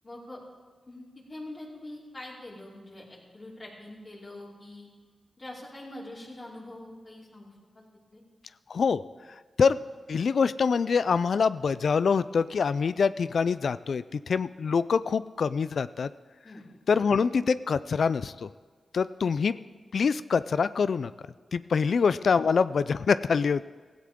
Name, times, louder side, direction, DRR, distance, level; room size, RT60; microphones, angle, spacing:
voice 1, 0.0-0.4 0.9-4.9 5.4-8.2 16.4-16.6 21.9-22.0, left 1 dB, 40° left, -5 dB, 4.8 m, -44 dB
voice 2, 8.7-9.0 9.6-9.8 10.1-16.1 16.9-18.5 18.9-19.6 19.9-21.1 21.5-23.6, left 5 dB, 70° left, 15 dB, 0.3 m, -25 dB
16.0 x 14.5 x 3.7 m, 1.5 s
cardioid pair, 55°, 0 cm